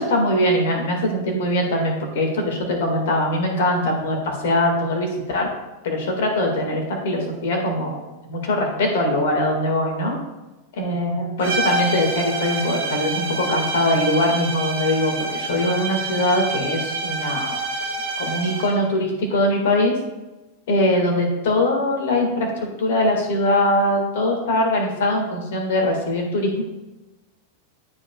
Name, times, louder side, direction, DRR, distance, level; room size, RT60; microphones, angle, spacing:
voice 1, 0.0-5.5 5.8-8.0 8.3-10.2 10.7-17.6 18.2-19.9 20.7-26.6, left 1 dB, 55° left, 2 dB, 1.9 m, -22 dB
sound 1, 11.4-18.8, right 2 dB, 65° right, 2.5 m, -27 dB
12.5 x 5.2 x 2.4 m, 1.1 s
figure-of-eight pair, 90°, 0 cm